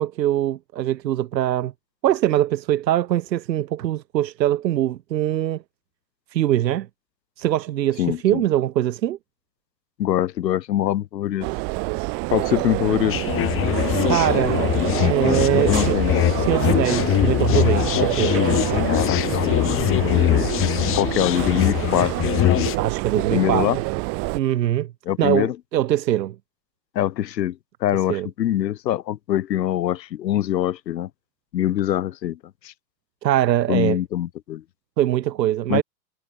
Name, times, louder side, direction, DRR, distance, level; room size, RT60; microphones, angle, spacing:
voice 1, 0.0-1.7 2.0-5.6 6.3-6.9 7.4-9.2 14.1-14.7 15.0-16.0 16.4-18.4 22.8-23.8 24.3-24.9 25.2-26.3 28.1-28.3 33.2-34.0 35.0-35.8, right 12 dB, 85° right, 1.4 m, -22 dB
voice 2, 8.0-8.4 10.0-11.5 12.3-13.2 15.5-16.1 18.9-20.5 20.9-22.4 23.3-23.8 25.1-25.6 26.9-31.1 31.5-32.4 32.6-32.7 33.7-34.6 35.7-35.8, left 12 dB, 90° left, 1.4 m, -24 dB
sound 1, 11.4-24.4, right 31 dB, 30° right, 0.5 m, -27 dB
sound 2, 13.1-22.8, left 15 dB, 25° left, 0.9 m, -22 dB
hypercardioid pair, 120°, 49 cm